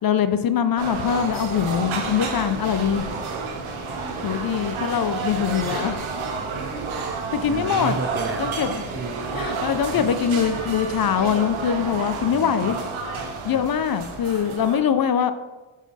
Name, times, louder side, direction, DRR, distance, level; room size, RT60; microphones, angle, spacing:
voice 1, 0.0-3.1 4.2-6.0 7.3-8.0 8.4-8.7 9.3-12.8 13.4-15.3, left 8 dB, 45° left, 10 dB, 0.5 m, -23 dB
sound 1, 0.8-14.8, right 4 dB, 70° right, 1.1 m, -30 dB
voice 2, 7.5-9.4 9.9-10.1 12.2-12.7 13.5-13.7, right 4 dB, 25° right, 7 dB, 0.4 m, -33 dB
5.6 x 4.9 x 4.0 m, 1.2 s
cardioid pair, 80°, 50 cm